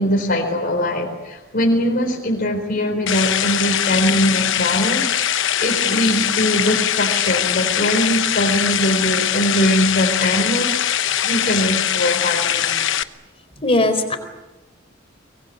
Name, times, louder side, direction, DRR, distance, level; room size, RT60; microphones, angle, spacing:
voice 1, 0.0-12.8, equal, 45° left, 1 dB, 4.2 m, -21 dB
sound 1, 3.1-13.0, left 10 dB, 65° left, 1.0 m, -21 dB
voice 2, 13.6-14.2, left 2 dB, 30° left, 7 dB, 4.2 m, -18 dB
24.5 x 22.0 x 9.4 m, 1.1 s
head